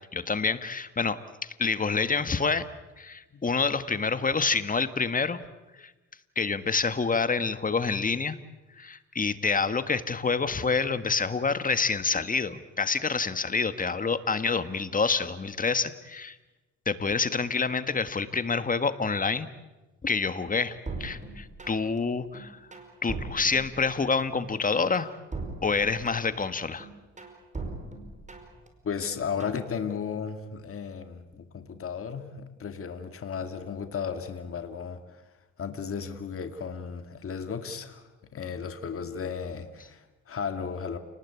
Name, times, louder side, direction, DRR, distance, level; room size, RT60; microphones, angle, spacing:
voice 1, 0.1-2.7 3.0-5.4 5.8-5.9 6.3-8.4 8.8-16.4 16.8-19.5 20.0-22.6 23.0-25.1 25.6-26.9, left 4 dB, 25° left, 12 dB, 1.6 m, -27 dB
sound 1, 20.9-22.0 22.3-24.2 24.6-26.4 26.8-28.7 29.0-29.6, right 3 dB, 25° right, 5.0 m, -39 dB
voice 2, 28.8-35.2 35.6-38.0 38.3-41.0, left 6 dB, 45° left, 7 dB, 2.3 m, -35 dB
29.5 x 20.0 x 8.4 m, 1.1 s
cardioid pair, 90°, 30 cm